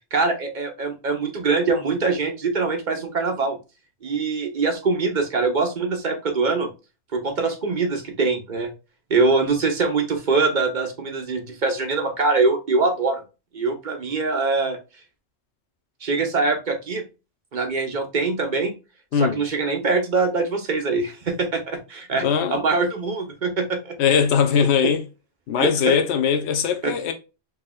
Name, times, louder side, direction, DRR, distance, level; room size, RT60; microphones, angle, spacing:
voice 1, 0.1-3.6 4.0-6.7 7.1-8.7 9.1-13.2 13.5-14.8 16.0-17.0 17.5-18.7 19.2-24.0 24.6-24.9 25.6-26.0 26.8-26.9, right 4 dB, 45° right, 1.0 m, -23 dB
voice 2, 22.2-22.6 24.0-25.0 25.5-27.1, left 7 dB, 80° left, 0.9 m, -20 dB
4.7 x 2.9 x 2.3 m
omnidirectional pair, 1.1 m